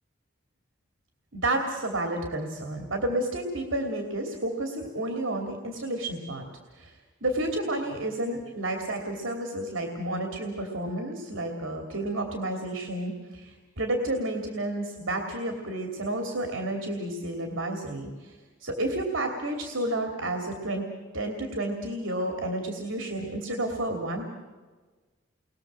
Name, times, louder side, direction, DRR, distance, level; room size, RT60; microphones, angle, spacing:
voice 1, 1.3-6.4 6.8-6.9 7.2-18.3 18.6-20.9 21.1-24.3, right 1 dB, 80° right, 3 dB, 2.9 m, -31 dB
29.5 x 22.0 x 7.6 m, 1.3 s
head